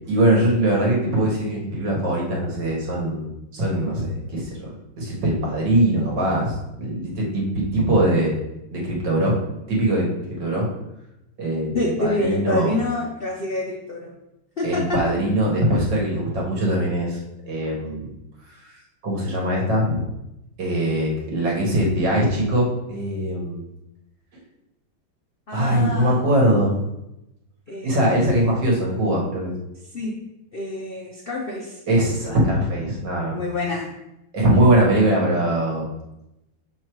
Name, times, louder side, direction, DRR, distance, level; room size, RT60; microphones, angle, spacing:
voice 1, 0.1-4.7 5.0-6.5 6.8-8.3 8.7-9.4 9.7-10.7 11.4-12.7 14.6-17.2 17.5-18.1 19.0-20.0 20.6-23.6 25.5-26.7 27.8-29.5 31.9-33.4 34.3-35.9, right 1 dB, 60° right, -3 dB, 2.2 m, -21 dB
voice 2, 11.7-14.1 14.6-15.1 25.5-26.2 27.7-28.6 29.9-30.1 30.5-31.7 33.3-33.9, left 2 dB, 60° left, -2 dB, 0.5 m, -27 dB
6.5 x 4.2 x 4.7 m, 0.89 s
omnidirectional pair, 2.2 m